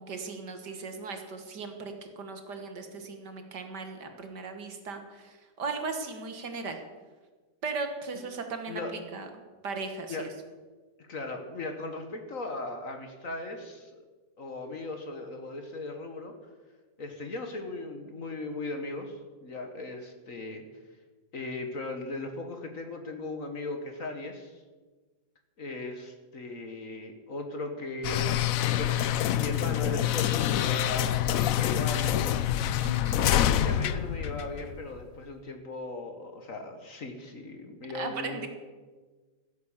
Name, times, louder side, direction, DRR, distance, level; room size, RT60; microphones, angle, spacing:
voice 1, 0.0-6.8 7.6-9.3 9.6-10.3 32.8-33.2 37.9-38.5, right 4 dB, 60° right, 6 dB, 1.9 m, -37 dB
voice 2, 11.0-14.0 14.4-16.3 17.0-20.6 21.3-24.6 25.6-29.0 29.4-32.3 33.4-38.5, left 2 dB, 45° left, 5 dB, 1.6 m, -38 dB
sound 1, 28.0-35.0, left 11 dB, 85° left, 0.7 m, -26 dB
15.5 x 8.4 x 7.2 m, 1.4 s
omnidirectional pair, 2.2 m